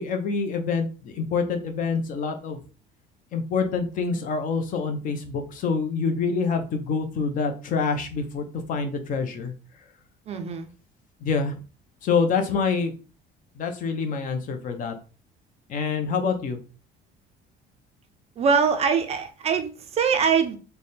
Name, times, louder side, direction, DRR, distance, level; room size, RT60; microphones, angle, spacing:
voice 1, 0.0-2.6 3.3-9.5 11.2-11.6 12.0-12.9 13.6-14.9 15.7-16.6, left 5 dB, 45° left, 6 dB, 0.6 m, -26 dB
voice 2, 10.3-10.7 18.4-20.6, right 6 dB, 35° right, 7 dB, 0.4 m, -23 dB
3.4 x 2.1 x 4.1 m, 0.35 s
cardioid pair, 165°, 19 cm